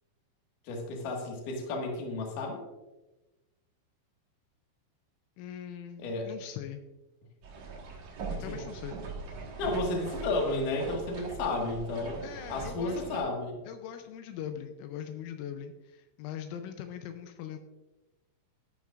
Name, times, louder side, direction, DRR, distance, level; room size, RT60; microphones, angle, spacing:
voice 1, 0.7-2.6 6.0-6.3 8.3-8.6 9.6-13.6, left 2 dB, 55° left, 0 dB, 2.6 m, -32 dB
voice 2, 5.4-6.8 8.4-9.0 12.2-13.0 13.7-17.6, left 9 dB, 85° left, 7 dB, 3.1 m, -41 dB
sound 1, 7.4-13.2, right 4 dB, 85° right, 1.5 m, -41 dB
12.5 x 9.5 x 2.4 m, 1.1 s
omnidirectional pair, 5.7 m